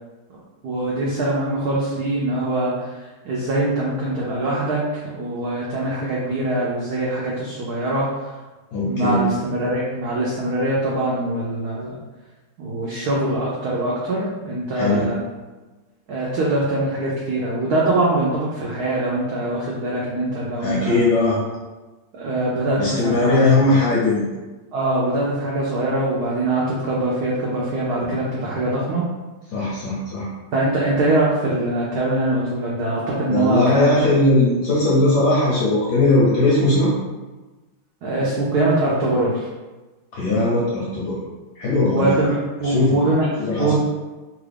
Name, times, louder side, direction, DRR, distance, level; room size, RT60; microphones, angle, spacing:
voice 1, 0.6-8.4 8.8-11.9 12.6-15.2 16.1-21.0 22.1-23.5 24.7-29.0 30.5-34.0 38.0-39.5 41.8-43.3 43.6-43.8, right 2 dB, 85° right, -5 dB, 0.8 m, -23 dB
voice 2, 8.7-9.2 14.8-15.1 20.6-21.4 22.8-24.3 29.5-30.3 33.3-36.9 40.1-41.2 41.6-42.1 42.6-43.0 43.4-43.8, left 2 dB, 70° left, -5 dB, 1.0 m, -19 dB
3.3 x 2.4 x 3.3 m, 1.2 s
omnidirectional pair, 2.3 m